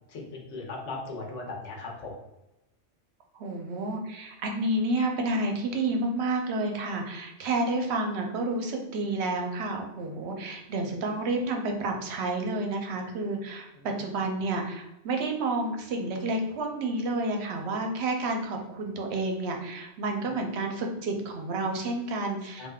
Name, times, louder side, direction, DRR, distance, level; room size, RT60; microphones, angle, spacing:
voice 1, 0.1-2.1 13.7-14.2 20.2-20.3 22.6-22.7, left 3 dB, 80° left, -1 dB, 1.1 m, -38 dB
voice 2, 3.3-22.7, right 2 dB, 70° right, 3 dB, 0.8 m, -30 dB
3.4 x 2.6 x 2.2 m, 0.92 s
omnidirectional pair, 1.2 m